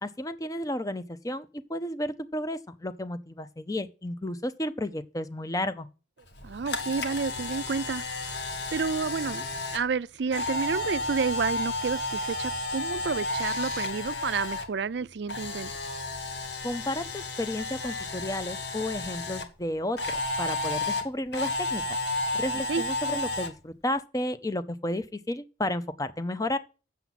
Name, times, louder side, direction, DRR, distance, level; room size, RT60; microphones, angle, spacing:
voice 1, 0.0-5.9 16.6-21.8 22.3-26.6, left 1 dB, 20° left, 0.7 m, -32 dB
Camera, 6.3-14.7 15.0-19.4 20.0-23.5, left 2 dB, 65° left, 1.5 m, -32 dB
voice 2, 6.4-8.0 8.7-9.5 9.7-15.7 22.7-22.8, right 5 dB, 65° right, 0.4 m, -30 dB
7.8 x 7.0 x 5.8 m
head